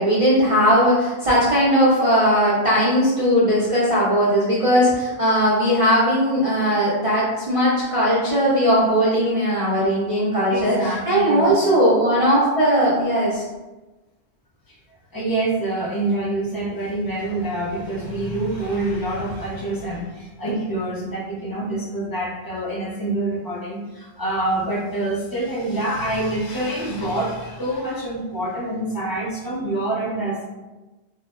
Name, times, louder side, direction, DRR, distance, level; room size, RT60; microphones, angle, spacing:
voice 1, 0.0-13.4, equal, 55° right, -8 dB, 0.3 m, -18 dB
voice 2, 10.5-11.5 14.7-14.8 15.1-30.4, right 2 dB, 30° left, -5 dB, 0.4 m, -26 dB
2.7 x 2.0 x 2.3 m, 1.1 s
omnidirectional pair, 1.1 m